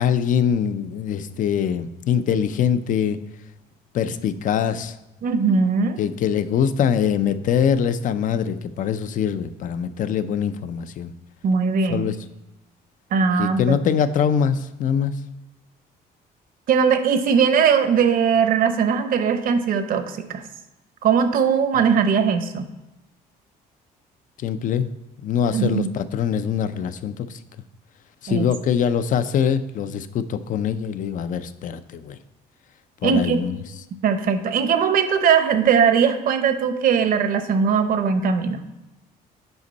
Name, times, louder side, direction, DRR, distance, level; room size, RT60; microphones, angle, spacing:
voice 1, 0.0-3.2 3.9-5.0 6.0-11.1 11.9-12.2 13.4-15.1 24.4-24.9 25.2-27.4 28.2-32.2 33.0-33.6, left 8 dB, 50° left, 13 dB, 0.5 m, -23 dB
voice 2, 5.2-6.0 11.4-12.1 13.1-13.8 16.7-20.4 21.0-22.7 25.5-25.9 28.3-28.5 33.0-33.4 34.0-38.6, right 6 dB, 60° right, 9 dB, 0.8 m, -20 dB
8.0 x 5.2 x 4.0 m, 1.0 s
cardioid pair, 110°, 17 cm